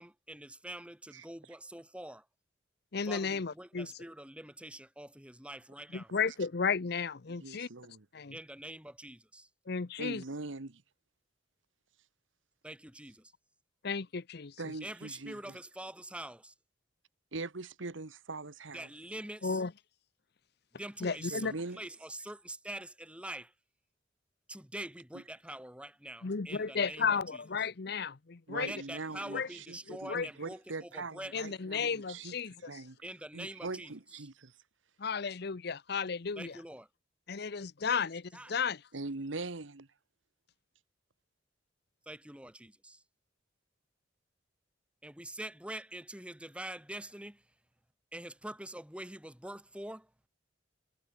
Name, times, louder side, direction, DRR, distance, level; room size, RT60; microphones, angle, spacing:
voice 1, 0.0-2.2 3.1-6.1 8.3-9.5 12.6-13.3 14.8-16.5 18.7-19.6 20.7-23.5 24.5-27.4 28.5-31.4 33.0-33.9 36.4-36.9 38.3-38.5 42.1-43.0 45.0-47.4 48.1-50.1, right 1 dB, 5° right, 4.7 m, -45 dB
voice 2, 2.9-3.9 5.9-7.7 8.1-8.4 9.7-10.2 13.8-14.6 19.4-19.7 21.0-21.5 26.2-28.7 29.3-29.5 29.9-30.3 31.3-32.8 35.0-36.6 37.3-38.8, left 5 dB, 55° left, 0.7 m, -34 dB
voice 3, 7.4-8.1 10.0-10.8 14.6-15.6 17.3-18.9 21.3-21.8 28.5-32.3 32.6-33.0 33.3-34.5 38.9-39.9, right 3 dB, 85° right, 1.3 m, -42 dB
head